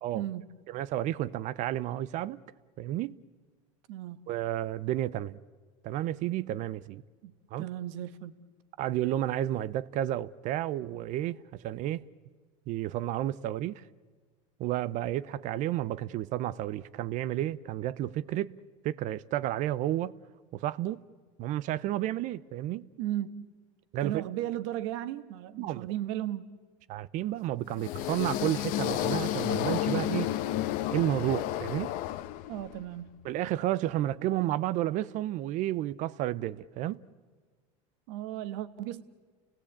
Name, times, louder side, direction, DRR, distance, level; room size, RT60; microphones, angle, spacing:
voice 1, 0.1-0.5 3.9-4.2 7.2-7.3 7.6-8.3 23.0-23.5 24.0-26.5 32.5-33.2 38.1-39.0, right 13 dB, 75° right, 1.3 m, -35 dB
voice 2, 0.7-2.4 2.8-3.2 4.3-5.4 5.8-7.0 7.5-7.7 8.8-12.0 12.7-13.8 14.6-18.6 18.8-20.2 20.5-21.0 21.4-22.9 23.9-24.2 25.6-25.8 26.9-30.3 30.9-31.9 33.2-37.0, right 13 dB, 50° right, 0.6 m, -31 dB
sound 1, 27.7-32.8, left 13 dB, 60° left, 1.0 m, -31 dB
30.0 x 18.5 x 8.6 m
supercardioid pair, 120°, 16 cm